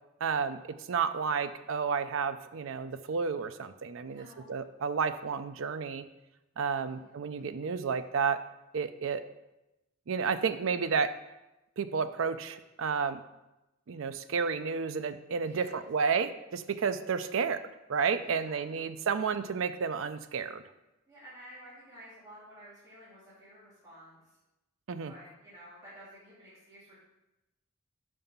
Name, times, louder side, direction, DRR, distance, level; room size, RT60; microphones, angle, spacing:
voice 1, 0.2-6.1 6.6-8.4 8.7-9.2 10.1-11.1 11.8-13.2 13.9-20.6 24.9-25.1, right 5 dB, 70° right, 11 dB, 0.4 m, -31 dB
voice 2, 4.1-4.5 6.9-7.5 15.4-15.7 18.2-18.8 21.1-24.2 25.1-27.0, equal, 15° right, -12 dB, 2.6 m, -52 dB
5.7 x 5.5 x 5.5 m, 0.96 s
head